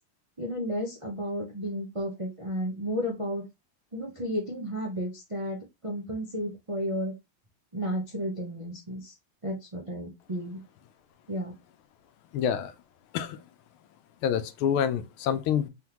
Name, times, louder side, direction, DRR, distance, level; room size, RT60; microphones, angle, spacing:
voice 1, 0.4-3.4 3.9-5.6 5.8-7.1 7.7-9.1 9.4-10.6 11.3-11.5, equal, 40° right, 0.4 m, -32 dB
voice 2, 12.3-12.7 13.1-13.4 14.2-15.7, left 8 dB, 85° left, 1.5 m, -27 dB
4.3 x 3.6 x 2.9 m
omnidirectional pair, 2.3 m